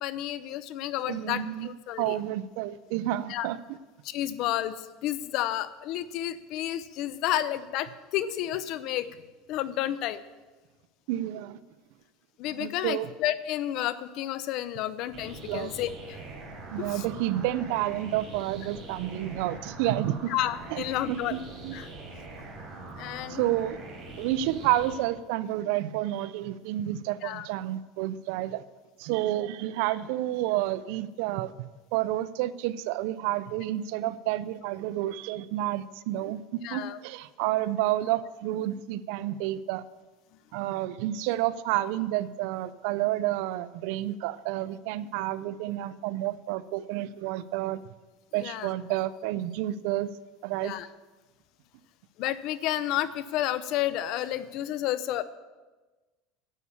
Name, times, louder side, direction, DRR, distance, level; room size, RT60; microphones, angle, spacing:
voice 1, 0.0-2.2 3.3-3.5 4.0-9.1 9.5-10.2 12.4-16.2 16.8-17.0 20.3-21.4 21.7-21.9 23.0-23.4 27.2-27.5 36.6-37.0 48.4-48.7 50.6-50.9 52.2-55.2, left 13 dB, 55° left, 15 dB, 0.7 m, -31 dB
voice 2, 1.1-1.7 2.0-3.6 11.1-11.6 12.5-13.1 15.4-15.7 16.7-20.3 20.7-21.7 23.3-23.8 24.2-28.6 29.0-31.5 31.9-39.8 40.5-47.8 48.3-50.1 50.4-50.8, right 14 dB, 70° right, 16 dB, 0.5 m, -30 dB
sound 1, 15.1-24.9, right 2 dB, 30° right, 4.7 m, -43 dB
11.0 x 8.6 x 7.0 m, 1.2 s
supercardioid pair, 140°, 0 cm